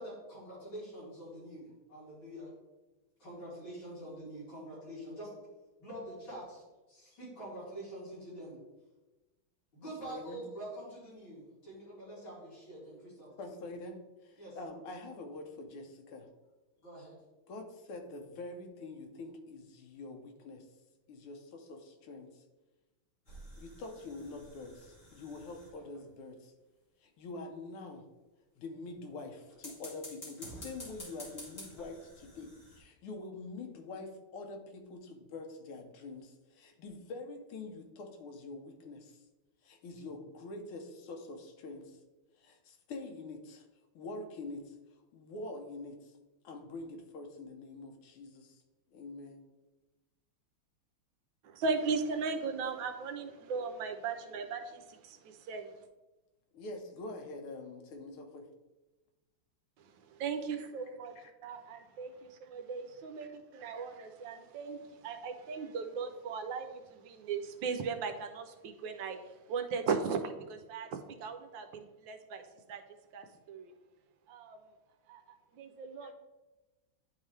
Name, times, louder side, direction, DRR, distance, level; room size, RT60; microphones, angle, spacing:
voice 1, 0.0-2.5 3.2-5.3 5.8-8.6 9.7-13.3 14.4-14.6 16.8-17.2, right 1 dB, 65° left, -8 dB, 3.4 m, -46 dB
voice 2, 9.8-10.4 13.4-16.3 17.5-20.7 21.1-22.4 23.6-26.5 27.0-28.0 28.6-39.2 39.6-42.0 42.4-43.7 44.0-44.8 45.1-46.1 46.4-48.6 48.9-49.4 56.5-58.5 61.2-61.3 76.0-76.1, left 2 dB, 85° left, 4 dB, 1.8 m, -45 dB
sound 1, 23.3-26.1 29.5-32.8, left 1 dB, 35° left, 2.4 m, -50 dB
voice 3, 51.4-55.7 59.8-61.1 61.4-72.4 72.7-72.8 73.1-73.7 74.3-74.6 75.1-75.2 75.5-76.1, right 5 dB, 75° right, 6 dB, 1.2 m, -37 dB
10.5 x 3.8 x 3.2 m, 1.1 s
omnidirectional pair, 2.3 m